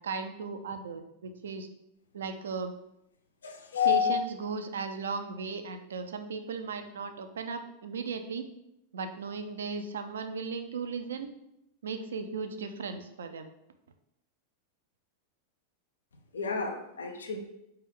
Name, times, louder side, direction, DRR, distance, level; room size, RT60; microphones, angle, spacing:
voice 1, 0.0-1.7 2.1-2.7 3.8-8.4 8.9-11.3 11.8-13.5, right 5 dB, 65° right, 8 dB, 0.4 m, -36 dB
voice 2, 3.4-4.2 16.3-17.4, left 8 dB, 70° left, 4 dB, 0.6 m, -29 dB
4.4 x 3.3 x 3.5 m, 0.82 s
figure-of-eight pair, 90°, 0 cm